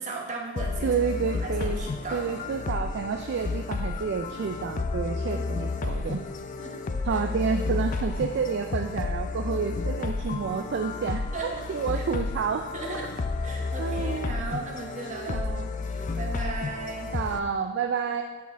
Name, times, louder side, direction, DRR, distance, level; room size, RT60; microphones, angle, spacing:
voice 1, 0.0-2.3 2.6-2.7 5.3-5.7 6.6-6.8 7.1-7.2 11.3-11.6 11.9-12.0 12.7-13.1 13.4-15.4 15.8-17.1, right 3 dB, 35° right, -1 dB, 1.1 m, -37 dB
sound 1, 0.6-17.4, left 3 dB, 35° left, 0.3 m, -31 dB
voice 2, 0.8-1.8 2.1-6.2 7.0-12.7 12.9-13.1 13.8-14.3 15.3-15.7 17.1-18.2, right 6 dB, 50° right, 5 dB, 0.3 m, -29 dB
8.3 x 4.2 x 4.5 m, 1.4 s
head